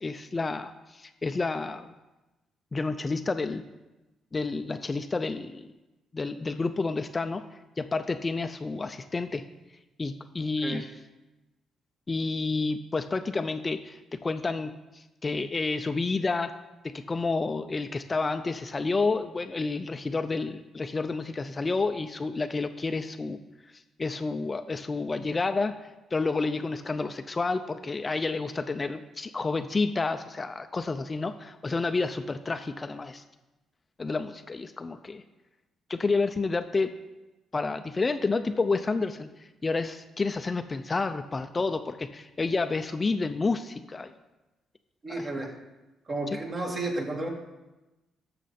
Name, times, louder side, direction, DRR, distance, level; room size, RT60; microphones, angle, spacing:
voice 1, 0.0-1.9 2.7-3.6 4.3-5.7 6.1-7.4 7.8-9.4 10.0-10.9 12.1-16.5 16.8-23.4 23.7-25.7 26.1-33.2 34.0-35.2 35.9-36.9 37.5-44.1 45.1-45.3 46.3-46.4, left 3 dB, 30° left, 9 dB, 0.5 m, -30 dB
voice 2, 45.0-45.5 46.1-47.3, right 2 dB, 40° right, 1 dB, 2.1 m, -32 dB
12.5 x 6.7 x 4.2 m, 1.0 s
cardioid pair, 90°, 0 cm